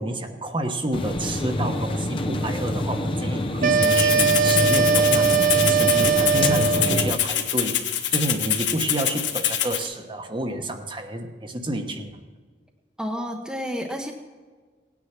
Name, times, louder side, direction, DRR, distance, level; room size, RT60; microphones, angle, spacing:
voice 1, 0.0-5.4 5.7-12.2, right 1 dB, 25° right, 5 dB, 1.2 m, -29 dB
sound 1, 0.9-7.1, left 1 dB, 30° left, 0.8 m, -26 dB
sound 2, 3.6-7.1, right 6 dB, 50° right, 0.5 m, -20 dB
Rattle (instrument), 3.8-9.8, left 10 dB, 80° left, 1.4 m, -25 dB
voice 2, 13.0-14.1, equal, 5° right, 1 dB, 0.9 m, -30 dB
18.0 x 9.8 x 5.9 m, 1.5 s
head